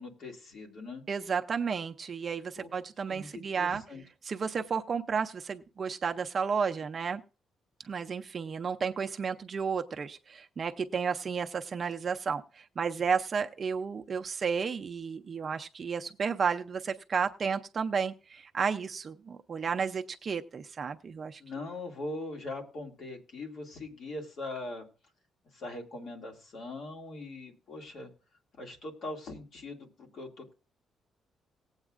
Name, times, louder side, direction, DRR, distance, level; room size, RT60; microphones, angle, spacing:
voice 1, 0.0-1.0 2.6-2.7 3.1-4.0 21.4-24.8 25.5-28.1 28.6-30.5, left 2 dB, 60° left, 1 dB, 2.1 m, -41 dB
voice 2, 1.1-3.8 4.2-7.2 7.9-21.4, right 6 dB, 35° right, 6 dB, 0.4 m, -32 dB
18.5 x 8.0 x 2.4 m, 0.35 s
cardioid pair, 145°, 0 cm